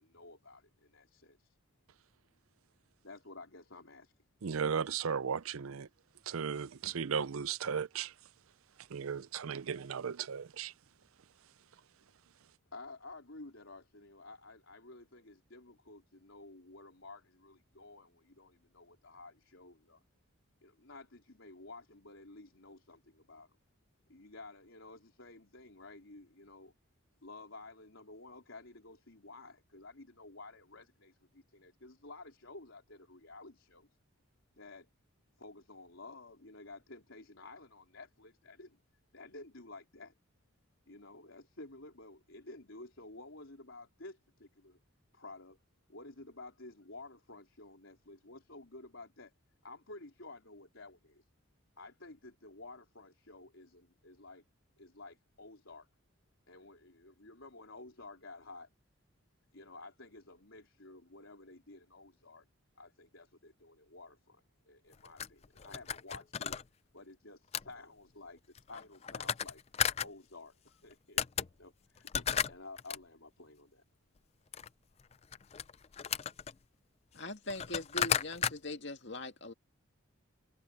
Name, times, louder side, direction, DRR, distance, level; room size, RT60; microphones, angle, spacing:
voice 1, 0.0-1.6 3.0-4.1 12.7-20.0 20.6-23.6 24.1-26.7 27.2-33.9 34.6-34.9 35.4-38.8 39.1-40.1 40.9-44.8 45.1-45.6 45.9-49.3 49.6-51.2 51.8-54.4 54.8-55.9 56.5-58.7 59.5-62.5 62.8-66.6 66.9-69.6 70.0-73.8, left 2 dB, 70° left, 4.0 m, -52 dB
voice 2, 4.4-5.9 6.3-8.1 8.9-10.7, right 6 dB, 85° right, 0.5 m, -36 dB
sound 1, 64.9-66.6 67.5-67.7 68.5-70.1 70.9-71.0 71.2-71.5 72.0-73.0 74.5-74.7 75.1-76.5 77.2-77.3 77.5-78.5, left 8 dB, 30° left, 0.4 m, -34 dB
voice 3, 77.1-79.5, left 2 dB, 55° left, 2.2 m, -41 dB
head